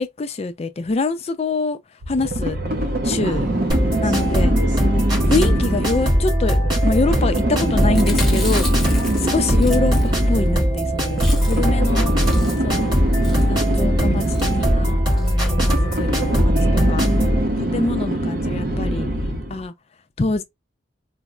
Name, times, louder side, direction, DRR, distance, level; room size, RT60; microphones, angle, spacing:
voice 1, 0.0-1.8 2.1-2.6 3.0-3.5 4.0-4.5 5.3-8.9 9.3-12.1 12.6-13.0 13.5-14.2 14.7-16.5 16.9-17.1 17.7-19.1 19.5-19.7 20.2-20.4, left 3 dB, 35° left, 0.4 m, -25 dB
sound 1, 2.0-19.6, right 1 dB, 50° right, 0.6 m, -24 dB
voice 2, 3.2-5.9 7.5-8.2 9.0-9.2 14.0-14.9 16.5-18.0, right 2 dB, 70° right, 0.9 m, -30 dB
sound 2, 3.7-17.4, equal, 25° right, 1.7 m, -20 dB
Chewing mastication, 7.8-10.5 10.8-10.9 11.1-11.8 12.1-12.8 13.2-13.5 14.2-14.5 15.1-15.4 15.7-15.8 16.0-16.1, left 2 dB, ahead, 0.8 m, -34 dB
4.2 x 2.0 x 2.2 m
head